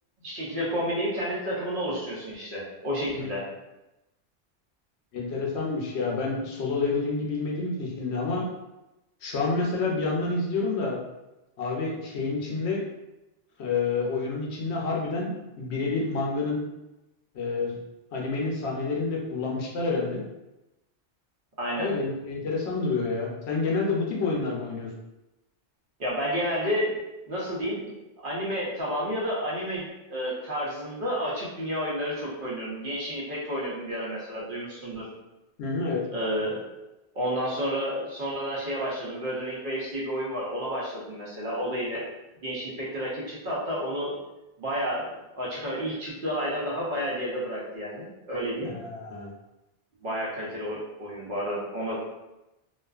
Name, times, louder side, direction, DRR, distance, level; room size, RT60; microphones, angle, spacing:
voice 1, 0.2-3.4 21.6-21.9 26.0-27.0 27.2-27.9 28.2-35.1 36.1-36.6 37.1-42.1 42.4-44.1 44.6-45.1 45.3-48.7 50.0-52.0, equal, 55° right, -6 dB, 0.8 m, -30 dB
voice 2, 5.1-8.5 9.2-11.0 11.6-12.8 13.6-16.6 17.3-17.8 18.1-20.2 21.8-24.9 35.6-36.0 48.6-49.3, left 3 dB, 75° left, -2 dB, 0.8 m, -28 dB
2.4 x 2.3 x 2.3 m, 0.98 s
omnidirectional pair, 1.2 m